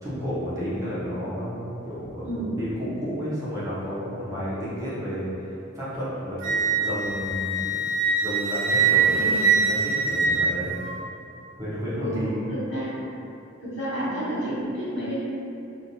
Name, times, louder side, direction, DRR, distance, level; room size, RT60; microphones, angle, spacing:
voice 1, 0.0-2.3 2.6-7.8 8.2-10.7 11.6-12.4, equal, 15° right, -10 dB, 0.7 m, -31 dB
voice 2, 2.2-2.8 9.2-9.4 12.0-13.0 13.6-15.2, right 1 dB, 70° left, -11 dB, 1.3 m, -30 dB
Wind instrument woodwind instrument, 6.4-11.0, right 4 dB, 70° right, 0.4 m, -23 dB
2.5 x 2.5 x 2.8 m, 2.7 s
head